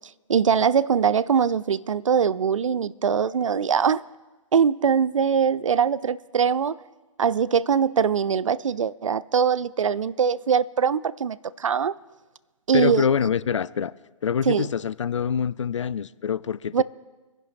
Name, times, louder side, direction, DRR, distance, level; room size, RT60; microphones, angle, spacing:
voice 1, 0.3-4.0 4.5-6.8 7.2-12.0 12.7-13.0 14.5-14.7 16.7-16.8, right 7 dB, 65° right, 0.4 m, -22 dB
voice 2, 12.7-13.9 14.2-16.8, left 7 dB, 60° left, 0.4 m, -25 dB
28.0 x 10.5 x 2.4 m
figure-of-eight pair, 120°, 18 cm